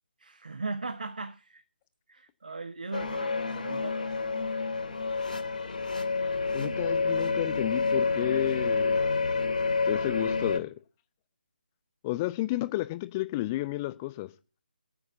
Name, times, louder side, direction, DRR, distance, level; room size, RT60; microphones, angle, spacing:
voice 1, 0.2-1.6 2.1-4.1 6.5-6.8, right 3 dB, 55° right, 1.0 m, -38 dB
sound 1, 2.9-10.6, left 4 dB, 55° left, 2.4 m, -28 dB
voice 2, 6.5-9.0 9.9-10.7 12.0-14.3, left 17 dB, 15° left, 0.6 m, -31 dB
8.9 x 8.5 x 8.1 m
figure-of-eight pair, 150°, 6 cm